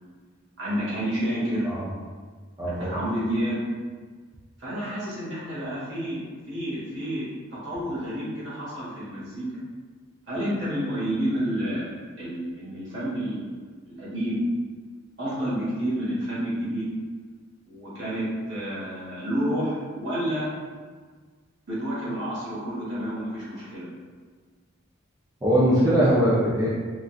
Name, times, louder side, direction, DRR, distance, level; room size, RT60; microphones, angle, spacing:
voice 1, 0.6-1.7 2.6-3.6 4.6-6.2 6.5-9.4 10.3-11.9 12.1-13.6 13.9-14.4 15.2-16.9 17.7-20.5 21.7-23.9, equal, 60° right, -9 dB, 1.3 m, -29 dB
voice 2, 2.6-3.0 25.4-26.7, equal, 15° right, -9 dB, 0.5 m, -21 dB
3.8 x 2.2 x 2.3 m, 1.5 s
head